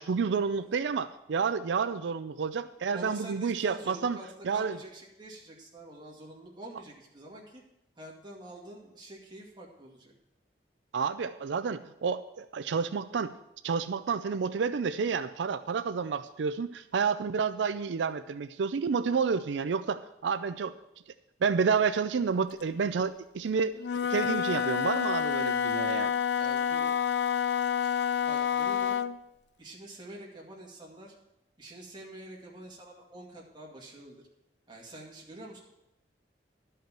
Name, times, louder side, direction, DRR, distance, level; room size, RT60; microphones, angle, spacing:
voice 1, 0.0-4.2 4.5-4.8 10.9-13.3 13.6-20.7 21.4-23.7 24.1-26.1, right 5 dB, 90° right, 11 dB, 0.4 m, -30 dB
voice 2, 2.9-7.6 8.0-10.1 26.3-27.0 27.8-27.9 28.2-29.0 29.6-31.1 31.6-34.2 34.7-35.6, right 1 dB, 25° right, -2 dB, 2.3 m, -47 dB
Wind instrument woodwind instrument, 23.8-29.2, left 7 dB, 70° left, 0.4 m, -28 dB
12.0 x 5.6 x 7.5 m, 0.86 s
head